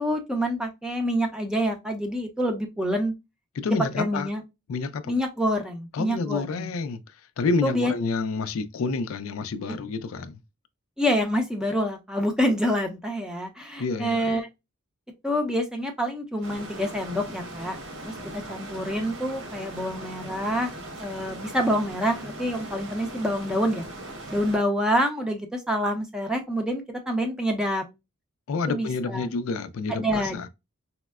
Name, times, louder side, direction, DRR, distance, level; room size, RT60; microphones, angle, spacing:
voice 1, 0.0-3.1 4.0-4.4 5.1-6.7 7.6-7.9 11.0-14.5 15.2-17.8 18.0-18.1 18.5-20.7 21.0-23.8 24.3-27.8 28.7-29.3 29.9-30.5, equal, 5° right, 0.6 m, -27 dB
voice 2, 3.6-4.3 4.7-5.1 5.9-7.0 7.4-10.4 13.8-14.3 28.5-30.5, left 4 dB, 75° left, 0.4 m, -28 dB
sound 1, 16.4-24.6, right 1 dB, 75° right, 1.3 m, -39 dB
4.2 x 2.0 x 2.3 m
head